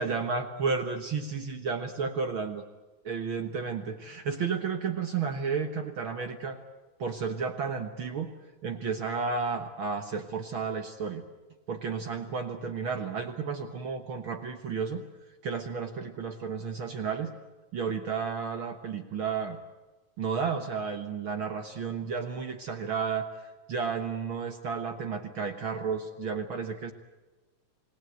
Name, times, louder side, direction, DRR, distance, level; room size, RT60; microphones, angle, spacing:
voice 1, 0.0-2.6 3.1-6.6 7.0-11.2 11.7-15.0 15.4-17.3 17.7-19.6 20.2-23.3 23.7-26.9, right 5 dB, 55° right, 6 dB, 1.8 m, -32 dB
28.0 x 18.5 x 8.0 m, 1.2 s
omnidirectional pair, 3.3 m